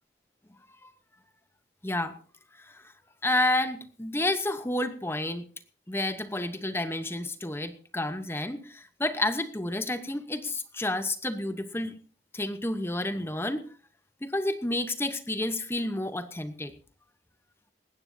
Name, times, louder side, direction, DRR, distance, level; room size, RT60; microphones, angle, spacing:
voice 1, 1.8-2.1 2.6-2.8 3.2-5.4 5.9-11.9 12.3-13.6 14.2-16.7, left 1 dB, 15° left, 10 dB, 0.9 m, -30 dB
19.5 x 16.5 x 2.7 m, 0.41 s
head